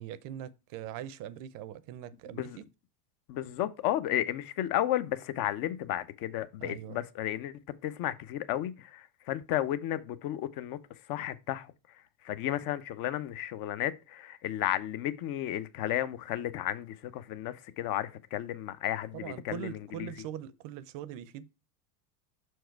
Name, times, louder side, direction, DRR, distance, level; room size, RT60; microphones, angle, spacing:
voice 1, 0.0-2.7 6.6-7.0 19.1-21.5, right 11 dB, 45° right, 0.6 m, -42 dB
voice 2, 3.3-7.5 7.8-10.8 11.1-11.7 12.2-20.1, left 12 dB, 50° left, 0.8 m, -33 dB
6.2 x 4.7 x 4.5 m
hypercardioid pair, 100°, 47 cm